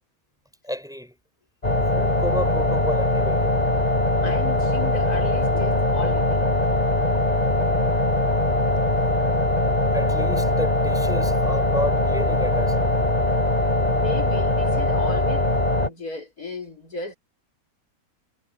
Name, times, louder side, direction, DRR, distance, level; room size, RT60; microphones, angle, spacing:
voice 1, 0.6-1.2 1.9-3.6 9.9-13.0, equal, ahead, 5.5 m, -31 dB
sound 1, 1.6-15.9, left 1 dB, 25° left, 4.5 m, -21 dB
voice 2, 4.2-6.5 7.4-7.8 13.8-17.1, left 4 dB, 80° left, 5.0 m, -35 dB
omnidirectional pair, 1.6 m